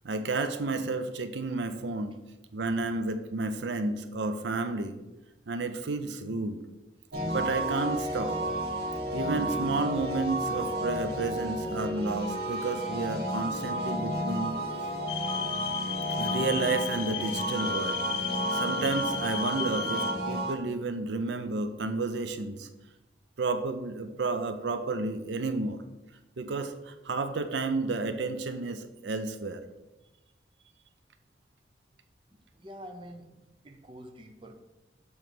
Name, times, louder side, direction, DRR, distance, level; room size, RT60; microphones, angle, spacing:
voice 1, 0.0-2.1 2.5-5.0 5.5-6.6 7.3-8.4 9.1-14.5 16.2-18.0 18.5-20.0 20.3-22.7 23.4-25.8 26.4-29.6, right 3 dB, 80° right, 9 dB, 0.5 m, -31 dB
sound 1, 7.1-20.5, right 1 dB, 65° right, 1.4 m, -32 dB
sound 2, 15.1-20.1, left 11 dB, 85° left, 0.5 m, -35 dB
voice 2, 32.5-34.6, equal, 30° right, 4 dB, 0.6 m, -44 dB
7.0 x 3.2 x 5.7 m, 1.0 s
head